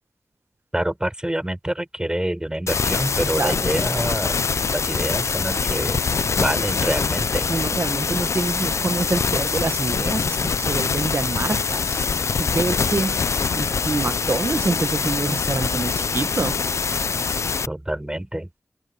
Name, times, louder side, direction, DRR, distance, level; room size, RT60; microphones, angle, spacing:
voice 1, 0.7-4.4 4.7-6.1 6.4-7.5 17.7-18.5, right 1 dB, 15° right, 6.6 m, -26 dB
sound 1, 2.7-17.7, left 5 dB, 70° left, 0.4 m, -24 dB
voice 2, 3.4-3.7 7.5-12.1 12.4-13.2 13.5-16.6, right 3 dB, 50° right, 1.2 m, -26 dB
open air
wide cardioid pair, 60°, 5 cm